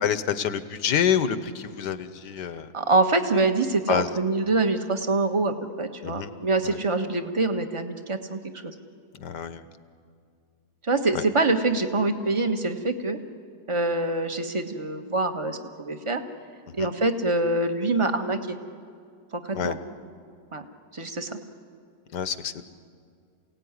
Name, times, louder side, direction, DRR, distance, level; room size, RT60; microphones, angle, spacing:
voice 1, 0.0-2.7 3.9-4.1 6.0-6.3 6.6-6.8 9.1-9.6 11.1-11.3 16.8-16.9 19.5-19.8 22.1-22.6, left 8 dB, 75° left, 12 dB, 1.6 m, -27 dB
voice 2, 2.7-8.7 10.8-13.2 13.7-16.2 16.7-18.6 19.3-19.8 20.5-20.6 20.9-21.4, right 2 dB, 20° right, 7 dB, 1.3 m, -25 dB
28.0 x 17.5 x 9.7 m, 2.3 s
omnidirectional pair, 1.9 m